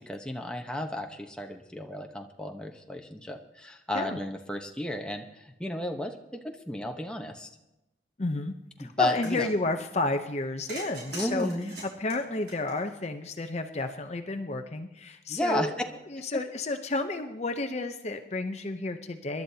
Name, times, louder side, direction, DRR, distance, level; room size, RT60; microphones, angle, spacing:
voice 1, 0.1-7.5 8.8-9.5 11.1-11.8 15.3-15.7 16.2-16.3, left 1 dB, 5° left, 2 dB, 1.0 m, -33 dB
voice 2, 8.2-8.5 8.8-11.5 12.0-15.8 16.1-19.4, left 2 dB, 40° left, 6 dB, 0.7 m, -31 dB
sound 1, 9.0-9.6 10.7-13.2, right 2 dB, 80° right, 5.3 m, -42 dB
25.5 x 12.0 x 2.8 m, 0.94 s
head